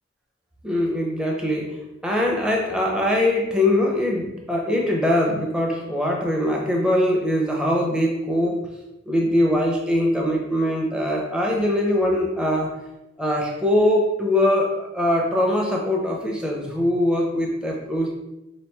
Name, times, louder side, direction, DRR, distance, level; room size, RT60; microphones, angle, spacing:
voice 1, 0.6-8.7 9.1-12.7 13.2-18.1, left 1 dB, 5° right, -2 dB, 0.7 m, -22 dB
4.7 x 3.0 x 3.4 m, 0.93 s
head